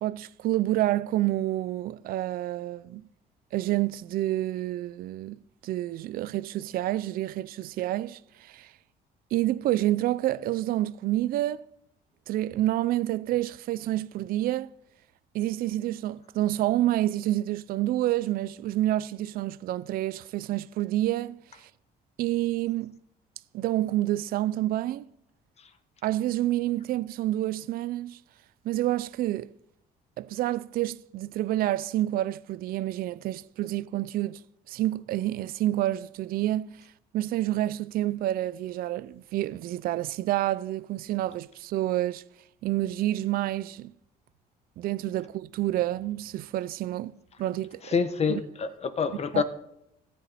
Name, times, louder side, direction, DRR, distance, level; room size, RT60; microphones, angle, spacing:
voice 1, 0.0-3.0 3.5-8.7 9.3-11.7 12.3-14.7 15.3-21.7 22.2-22.9 23.5-25.1 26.0-28.2 28.6-29.5 30.2-34.4 34.7-36.8 37.1-42.2 42.6-43.9 44.8-47.1 47.4-48.0 48.3-48.4 49.3-49.4, right 14 dB, 60° right, 0.4 m, -28 dB
voice 2, 47.8-49.4, left 6 dB, 40° left, 1.3 m, -27 dB
15.0 x 10.5 x 4.2 m
cardioid pair, 110°, 17 cm